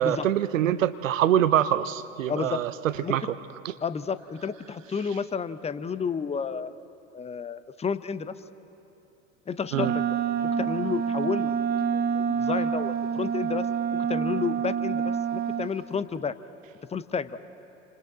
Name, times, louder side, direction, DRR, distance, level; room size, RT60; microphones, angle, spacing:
voice 1, 0.0-2.7 3.1-3.2 9.7-9.9, right 11 dB, 80° right, 14 dB, 0.8 m, -24 dB
voice 2, 2.3-2.6 3.0-3.1 3.8-6.8 7.1-8.3 9.5-10.2 10.4-11.7 11.9-15.0 15.3-16.4 16.9-17.4, left 6 dB, 15° left, 14 dB, 0.7 m, -31 dB
Wind instrument woodwind instrument, 9.7-15.8, right 7 dB, 25° right, 0.9 m, -27 dB
28.5 x 26.0 x 3.9 m, 3.0 s
hypercardioid pair, 75°, 38 cm